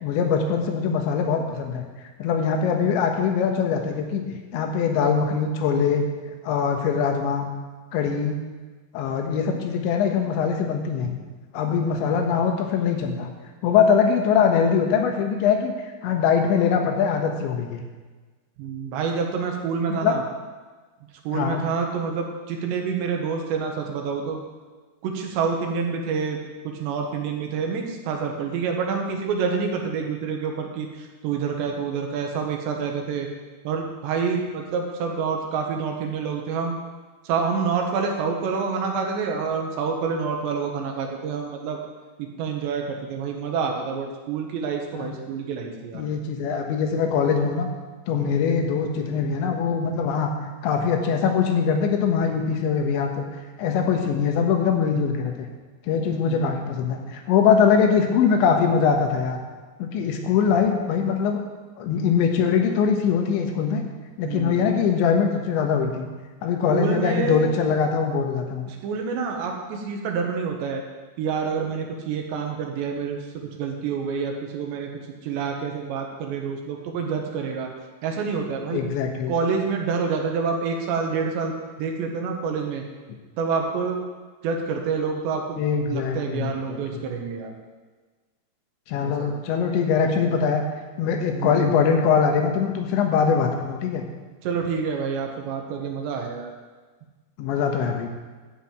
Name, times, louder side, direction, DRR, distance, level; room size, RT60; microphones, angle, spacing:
voice 1, 0.0-1.8 2.2-6.1 6.4-7.5 7.9-8.4 8.9-11.2 11.5-13.3 13.6-15.7 16.0-17.9 19.9-20.1 21.3-21.6 45.0-45.1 45.9-47.7 48.1-50.3 50.6-53.1 53.6-55.3 55.9-59.4 59.8-61.4 61.8-63.8 64.2-66.1 66.4-68.7 78.7-79.3 85.6-87.0 88.9-90.6 91.0-94.1 97.4-98.1, left 6 dB, 85° left, 3 dB, 3.6 m, -22 dB
voice 2, 18.6-20.2 21.2-24.4 25.0-30.9 31.2-33.3 33.6-36.8 37.2-41.8 42.2-46.0 56.2-56.5 64.2-64.7 66.7-67.5 68.7-70.8 71.2-74.9 75.2-77.7 78.0-78.8 79.3-82.8 83.4-84.0 84.4-85.6 85.9-87.5 89.0-89.3 91.3-91.7 94.4-96.5, right 5 dB, 80° right, 2 dB, 3.5 m, -27 dB
12.5 x 6.0 x 8.6 m, 1.4 s
omnidirectional pair, 5.1 m